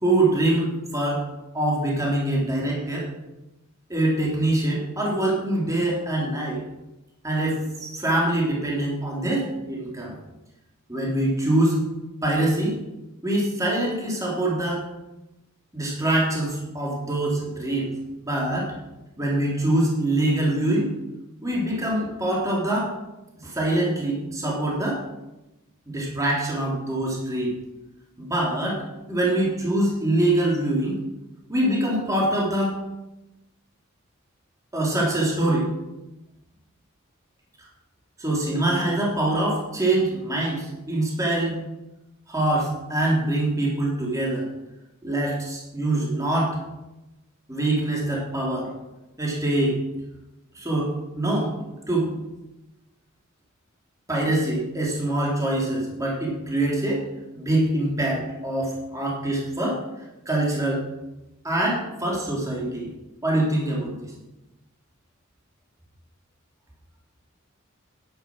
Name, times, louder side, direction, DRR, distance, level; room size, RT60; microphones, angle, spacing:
voice 1, 0.0-1.2 1.5-3.1 3.9-6.6 7.2-10.2 10.9-11.8 12.2-12.8 13.2-14.8 15.7-17.9 18.2-18.7 19.2-20.9 21.4-22.9 23.4-25.0 25.9-27.5 28.2-31.0 31.5-32.8 34.7-35.7 38.2-41.6 42.3-44.5 45.0-46.6 47.5-48.7 49.2-49.8 50.5-51.5 51.9-52.1 54.1-57.0 57.4-59.8 60.3-60.8 61.4-62.9 63.2-64.1, right 1 dB, 15° right, -4 dB, 3.8 m, -24 dB
11.0 x 10.5 x 6.5 m, 0.98 s
head